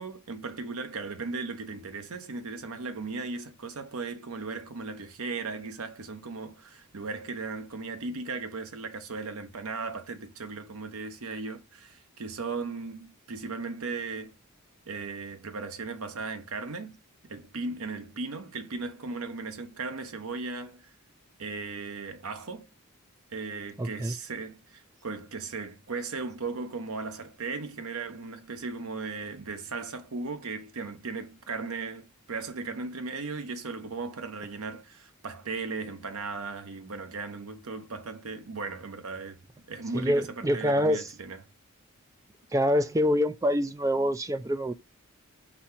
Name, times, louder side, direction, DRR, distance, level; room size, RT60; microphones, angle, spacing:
voice 1, 0.0-14.3 14.9-17.0 17.2-20.9 21.4-22.7 23.3-39.4 39.7-41.4, right 4 dB, 80° right, 0.8 m, -37 dB
voice 2, 23.8-24.1 39.9-41.1 42.5-44.7, equal, 15° right, 0.3 m, -26 dB
4.1 x 2.8 x 4.3 m
head